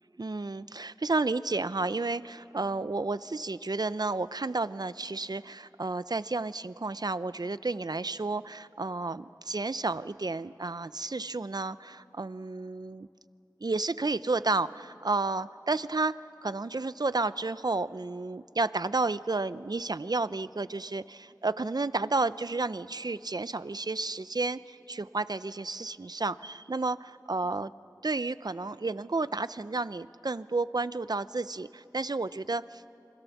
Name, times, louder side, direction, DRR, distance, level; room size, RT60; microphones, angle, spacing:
voice 1, 0.2-13.1 13.6-27.7 28.0-32.9, right 3 dB, 70° right, 15 dB, 0.5 m, -31 dB
26.5 x 24.5 x 7.2 m, 2.6 s
wide cardioid pair, 40°, 7 cm